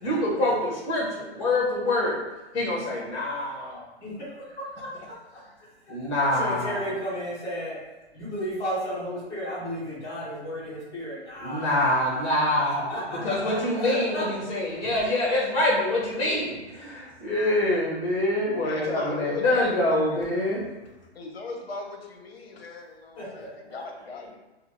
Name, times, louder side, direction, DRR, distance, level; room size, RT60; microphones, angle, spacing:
voice 1, 0.0-2.2 2.5-3.8 5.9-6.9 11.4-12.8 13.1-20.6, left 1 dB, 30° left, -4 dB, 1.2 m, -25 dB
voice 2, 4.0-4.9 5.8-7.8 8.1-14.3 23.2-23.5, equal, 10° left, -10 dB, 1.0 m, -34 dB
voice 3, 18.6-20.3 21.1-24.4, left 3 dB, 60° left, 3 dB, 0.7 m, -37 dB
4.2 x 2.0 x 2.8 m, 1.1 s
hypercardioid pair, 140°, 34 cm